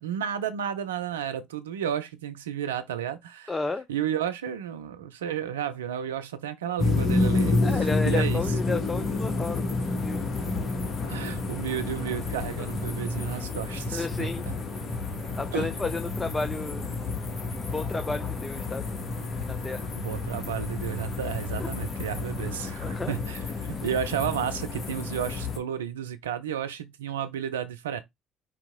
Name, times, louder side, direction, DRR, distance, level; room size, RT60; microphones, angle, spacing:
voice 1, 0.0-3.5 3.9-8.4 11.1-14.5 15.5-15.7 19.9-23.4 23.7-28.0, right 9 dB, 85° right, 0.5 m, -32 dB
voice 2, 3.5-3.9 7.6-9.6 9.9-10.2 13.9-14.4 15.4-16.9 17.7-18.9 19.5-19.9 21.6-21.7 22.8-23.2 23.7-23.8, left 3 dB, 20° left, 0.6 m, -32 dB
sound 1, 6.8-25.6, left 3 dB, 45° left, 1.4 m, -30 dB
4.8 x 2.9 x 3.6 m
hypercardioid pair, 55°, 0 cm